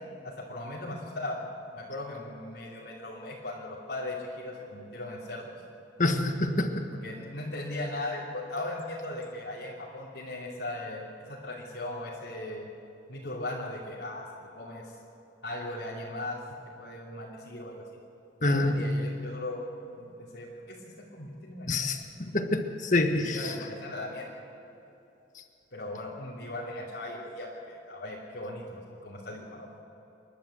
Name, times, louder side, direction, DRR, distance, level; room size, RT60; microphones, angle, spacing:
voice 1, 0.0-1.5 1.7-5.6 6.9-12.7 13.1-14.2 14.5-14.9 15.4-16.4 16.8-17.8 18.4-19.6 19.9-20.8 21.1-21.9 23.1-24.3 25.7-29.7, left 1 dB, 65° left, -7 dB, 3.0 m, -38 dB
voice 2, 6.0-6.9 18.4-18.8 21.7-23.5, left 2 dB, 40° left, 5 dB, 1.5 m, -27 dB
28.0 x 12.0 x 7.9 m, 2.9 s
head